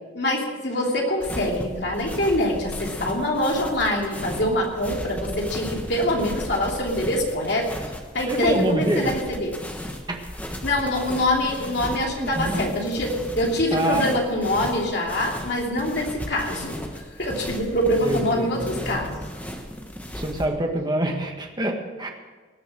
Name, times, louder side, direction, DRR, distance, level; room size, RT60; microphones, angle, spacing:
voice 1, 0.1-7.7 8.1-9.5 10.6-16.8 17.2-19.2, left 1 dB, 60° left, -1 dB, 3.0 m, -24 dB
sound 1, 1.2-20.4, equal, 10° left, 1.4 m, -35 dB
voice 2, 8.3-9.1 10.1-10.2 12.2-12.6 13.7-14.1 18.0-19.0 20.1-22.1, right 1 dB, 25° right, 3 dB, 1.6 m, -26 dB
19.5 x 6.9 x 7.7 m, 1.3 s
head